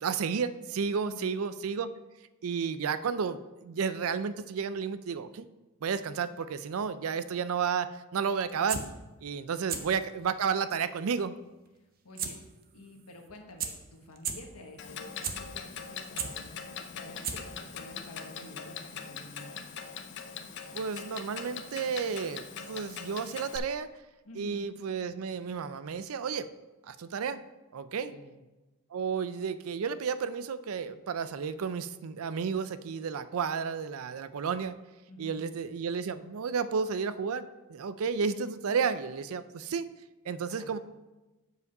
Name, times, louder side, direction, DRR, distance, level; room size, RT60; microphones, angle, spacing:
voice 1, 0.0-1.9 2.4-5.4 5.8-8.8 9.2-11.3 20.7-23.9 24.4-26.5 26.9-27.4 27.7-28.1 28.9-34.7 35.2-39.9 40.3-40.8, right 6 dB, 70° right, 13 dB, 0.4 m, -32 dB
voice 2, 1.0-1.4 9.6-9.9 12.0-12.4 12.7-19.6 24.2-24.7 27.9-28.3 35.1-35.5 40.4-40.8, left 1 dB, 90° left, 2 dB, 1.3 m, -50 dB
sound 1, 8.4-8.8 9.5-9.8 10.2-10.3 12.2-12.3 12.6-12.7 13.3-13.4 13.6-13.7 14.2-14.3 14.9-15.3 15.8-16.3 16.9-17.0 17.2-17.6 17.9-18.0, right 7 dB, 40° right, 0.8 m, -33 dB
Clock, 14.8-23.6, left 7 dB, 55° left, 0.6 m, -42 dB
8.0 x 4.8 x 5.4 m, 1.1 s
head